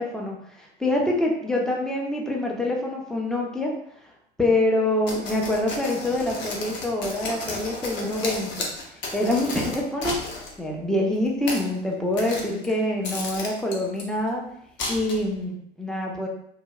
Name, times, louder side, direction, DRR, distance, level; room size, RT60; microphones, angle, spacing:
voice 1, 0.0-3.7 4.4-8.7 9.1-14.5 14.9-16.3, left 1 dB, ahead, 0 dB, 0.4 m, -26 dB
sound 1, 5.1-10.5 11.3-11.7 12.1-12.7 13.0-14.0 14.8-15.4, left 2 dB, 35° left, 0.6 m, -33 dB
2.9 x 2.2 x 2.3 m, 0.71 s
figure-of-eight pair, 80°, 33 cm